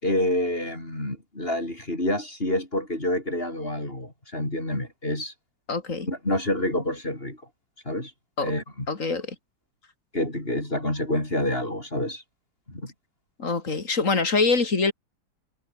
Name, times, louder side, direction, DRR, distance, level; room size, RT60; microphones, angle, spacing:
voice 1, 0.0-5.3 6.0-7.4 7.8-8.1 8.4-8.6 10.1-12.2 12.7-12.9, left 1 dB, 35° left, 6.3 m, -28 dB
voice 2, 5.7-6.1 8.4-8.5 8.9-9.3 13.4-14.9, left 4 dB, 50° left, 3.3 m, -24 dB
omnidirectional pair, 1.8 m